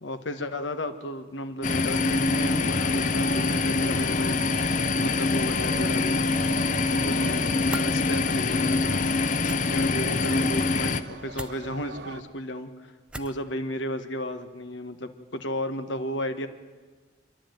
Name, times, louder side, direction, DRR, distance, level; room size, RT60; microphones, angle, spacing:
voice 1, 0.0-4.4 5.0-6.2 7.0-9.0 9.7-16.5, equal, 80° left, 8 dB, 1.4 m, -33 dB
sound 1, 1.6-11.0, left 3 dB, 45° left, 0.6 m, -25 dB
sound 2, 2.3-12.2, right 3 dB, 65° right, 1.2 m, -42 dB
sound 3, 7.7-7.9 9.4-9.6 11.3-11.6 13.1-13.4, right 1 dB, 5° right, 0.6 m, -36 dB
27.0 x 11.5 x 9.1 m, 1.4 s
head